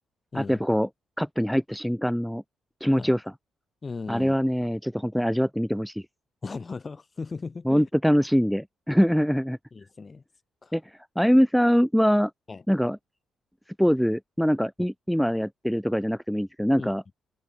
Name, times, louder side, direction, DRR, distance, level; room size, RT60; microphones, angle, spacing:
voice 1, 0.3-0.9 1.2-2.4 2.8-3.2 4.1-6.0 7.7-9.6 10.7-12.3 12.7-13.0 13.8-17.0, equal, ahead, 0.5 m, -23 dB
voice 2, 3.8-4.3 6.4-7.8 8.9-9.0 9.7-10.2 10.6-10.7 12.5-12.6 16.8-16.9, left 4 dB, 30° left, 2.7 m, -37 dB
cardioid pair, 90°, 0 cm